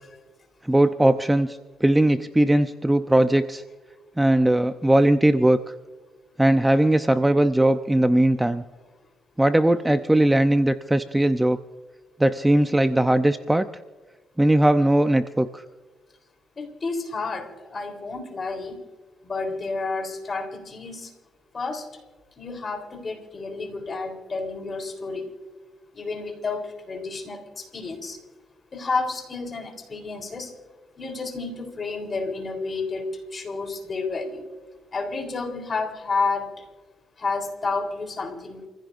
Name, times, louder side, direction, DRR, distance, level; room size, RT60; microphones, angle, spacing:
voice 1, 0.6-3.6 4.2-5.7 6.4-8.6 9.4-11.6 12.2-13.7 14.4-15.6, right 1 dB, 10° right, 9 dB, 0.6 m, -19 dB
voice 2, 16.6-18.8 19.2-21.1 21.5-21.9 22.4-25.3 25.9-28.2 28.7-30.5 31.0-34.4 34.9-36.7 37.2-38.7, left 3 dB, 40° left, 5 dB, 3.7 m, -30 dB
28.5 x 15.5 x 2.6 m, 1.3 s
cardioid pair, 90°, 0 cm